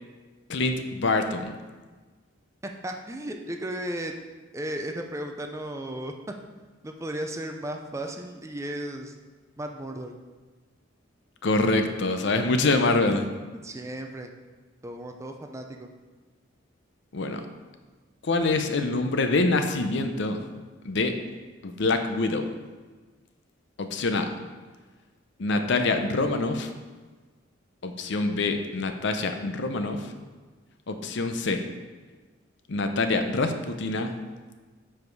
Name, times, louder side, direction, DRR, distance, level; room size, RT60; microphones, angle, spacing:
voice 1, 0.5-1.5 11.4-13.2 17.1-17.4 18.2-20.4 20.8-21.1 21.6-22.5 23.8-24.3 25.4-26.7 27.8-30.1 30.9-31.7 32.7-34.1, left 3 dB, 60° left, 7 dB, 0.6 m, -25 dB
voice 2, 2.8-4.1 4.5-6.1 6.8-9.1 9.6-10.1 13.1-13.2 13.6-14.3 14.8-15.9, right 1 dB, 15° right, 4 dB, 0.4 m, -35 dB
7.5 x 4.9 x 4.6 m, 1.3 s
head